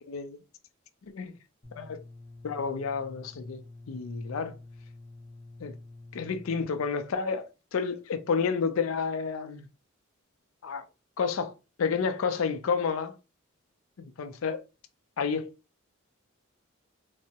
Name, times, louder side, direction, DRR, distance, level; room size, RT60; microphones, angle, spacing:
voice 1, 0.1-0.4 1.1-1.4 1.7-2.0 2.4-4.6 5.6-5.8 6.1-9.7 10.6-10.8 11.2-11.5 11.8-13.2 14.0-14.6 15.2-15.5, left 5 dB, 70° left, 0.4 m, -30 dB
sound 1, 1.6-6.6, left 2 dB, 35° left, 0.8 m, -48 dB
3.4 x 2.0 x 2.8 m
head